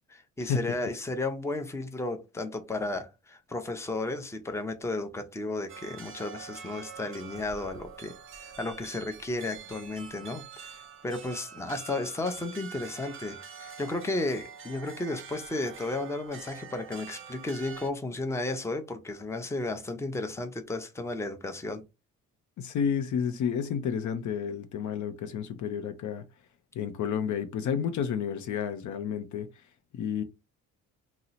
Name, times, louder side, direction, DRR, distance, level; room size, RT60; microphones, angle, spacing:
voice 1, 0.1-21.8, left 2 dB, 10° left, 0.6 m, -34 dB
sound 1, 5.7-17.9, right 7 dB, 40° right, 0.6 m, -46 dB
voice 2, 22.6-26.2 26.7-29.5 29.9-30.2, left 7 dB, 65° left, 0.6 m, -31 dB
2.8 x 2.0 x 4.0 m
cardioid pair, 80°, 33 cm